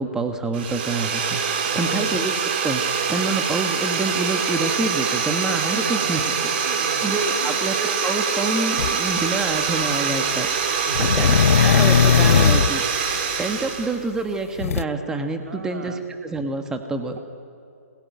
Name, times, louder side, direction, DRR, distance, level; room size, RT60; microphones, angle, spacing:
voice 1, 0.0-6.5 7.0-13.1 13.4-17.2, right 3 dB, 5° right, 6 dB, 1.4 m, -27 dB
sound 1, 0.5-14.0, right 6 dB, 40° right, 3.2 m, -24 dB
voice 2, 1.7-2.0 5.8-7.6 10.9-11.2 15.5-16.0, right 3 dB, 75° right, 4 dB, 3.1 m, -36 dB
sound 2, 8.8-8.9 10.9-12.7 14.6-14.8, left 8 dB, 60° left, 0.7 m, -17 dB
27.0 x 20.0 x 9.5 m, 2.5 s
hypercardioid pair, 145°, 8 cm